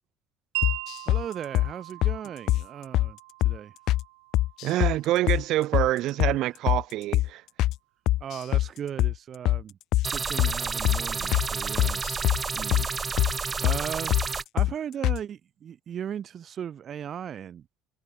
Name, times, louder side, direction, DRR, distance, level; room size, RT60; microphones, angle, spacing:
Wind chime, 0.5-6.6, right 26 dB, 80° right, 6.1 m, -40 dB
sound 1, 0.6-1.2 1.5-1.7 2.0-2.2 2.5-2.6 2.9-3.1 3.4-3.6 3.9-4.0 4.3-5.0 5.3-5.4 5.7-5.9 6.2-6.4 6.7-6.8 7.1-7.3 7.6-7.8 8.1-8.7 9.0-9.1 9.4-9.6 9.9-10.1 10.4-10.5 10.8-11.0 11.3-11.5 11.8-12.4 12.7-12.9 13.2-13.3 13.6-13.8 14.1-14.3 14.6-14.7 15.0-15.2, left 15 dB, 65° left, 0.6 m, -23 dB
voice 1, 1.1-3.2 3.4-3.7 8.2-9.8 10.1-12.0 12.5-12.9 13.6-14.1 14.5-17.7, right 9 dB, 45° right, 6.5 m, -37 dB
voice 2, 4.6-7.4, right 15 dB, 65° right, 0.8 m, -26 dB
sound 2, 10.0-14.4, right 5 dB, 30° right, 2.6 m, -30 dB
hypercardioid pair, 70°, 0 cm